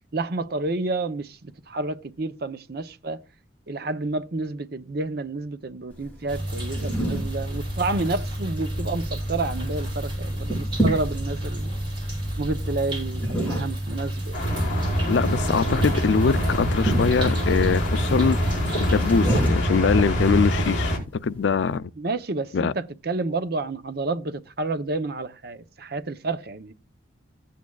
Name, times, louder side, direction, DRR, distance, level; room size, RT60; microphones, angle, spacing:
voice 1, 0.1-3.2 3.7-11.7 12.4-14.4 22.0-26.7, right 3 dB, 55° right, 0.8 m, -30 dB
sound 1, 5.9-21.8, right 1 dB, 10° left, 6.3 m, -33 dB
sound 2, 6.3-19.5, right 1 dB, 25° right, 7.4 m, -30 dB
sound 3, 14.3-21.0, equal, 40° left, 4.7 m, -24 dB
voice 2, 15.1-18.4 18.8-20.9 21.2-21.9 22.5-22.7, left 5 dB, 75° left, 0.4 m, -23 dB
15.5 x 8.5 x 2.3 m
head